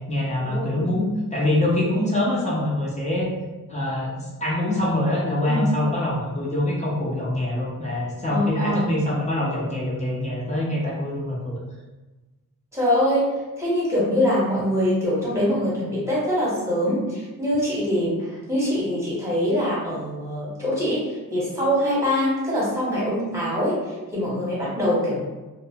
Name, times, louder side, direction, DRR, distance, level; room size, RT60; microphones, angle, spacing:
voice 1, 0.1-3.3 3.7-11.6, left 1 dB, 20° left, -5 dB, 0.7 m, -24 dB
voice 2, 8.3-8.9 12.7-13.3 13.6-25.2, equal, 10° right, -7 dB, 1.1 m, -23 dB
2.6 x 2.1 x 2.8 m, 1.2 s
wide cardioid pair, 115°, 34 cm